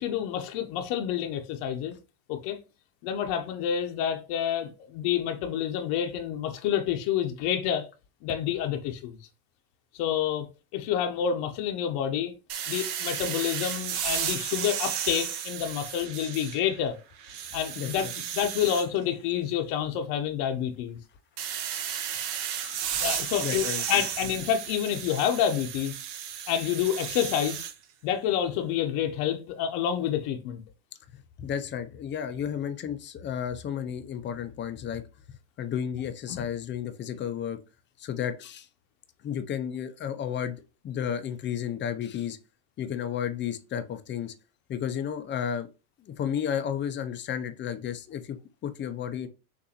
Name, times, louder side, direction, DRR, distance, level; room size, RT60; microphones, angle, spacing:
voice 1, 0.0-2.0 2.3-2.6 3.0-7.9 8.2-9.2 9.9-10.5 10.7-12.3 12.7-17.0 17.5-18.1 18.3-21.0 23.0-25.9 26.5-27.6 28.0-30.6 36.3-36.4, left 9 dB, 55° left, 0.8 m, -28 dB
sound 1, 12.5-16.8 17.2-18.9 21.4-27.7, right 9 dB, 55° right, 1.0 m, -33 dB
voice 2, 22.3-22.8 23.4-23.8 31.4-35.0 35.6-37.6 38.0-38.7 39.2-40.6 40.8-42.4 42.8-44.3 44.7-45.7 46.1-48.4 48.6-49.3, left 8 dB, 25° left, 0.5 m, -32 dB
6.4 x 2.6 x 2.9 m
supercardioid pair, 110°, 47 cm